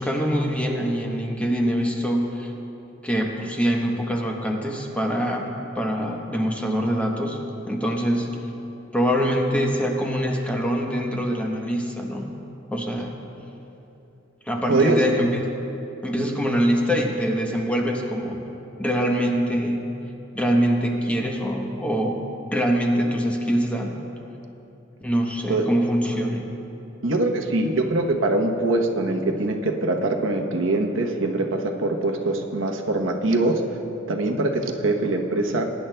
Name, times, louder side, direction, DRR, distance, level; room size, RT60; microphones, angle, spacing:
voice 1, 0.0-2.5 3.0-7.4 7.7-8.3 8.9-12.3 12.7-13.1 14.5-15.4 16.0-18.4 18.8-19.8 20.3-22.2 22.5-24.0 25.0-26.5, equal, 5° left, 0 dB, 0.9 m, -24 dB
voice 2, 14.7-15.0 25.5-25.6 27.0-33.6 34.1-35.6, right 2 dB, 85° right, 2 dB, 0.9 m, -23 dB
21.5 x 10.5 x 2.2 m, 2.9 s
head